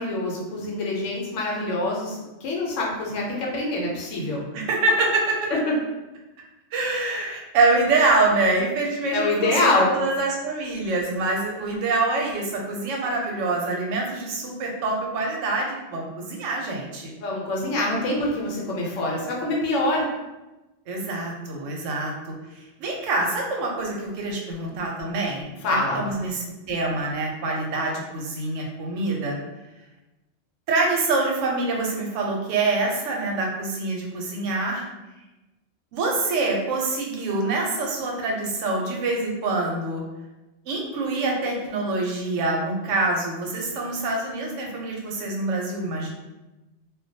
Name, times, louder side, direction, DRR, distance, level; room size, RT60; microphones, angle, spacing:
voice 1, 0.0-4.4 5.5-5.7 9.1-10.0 17.2-20.1 25.6-26.0, left 2 dB, 85° left, -2 dB, 1.0 m, -25 dB
voice 2, 4.5-5.5 6.7-17.1 20.9-29.3 30.7-34.9 35.9-40.0 40.7-46.1, right 3 dB, 90° right, 0 dB, 0.9 m, -25 dB
2.2 x 2.2 x 2.6 m, 1.1 s
omnidirectional pair, 1.3 m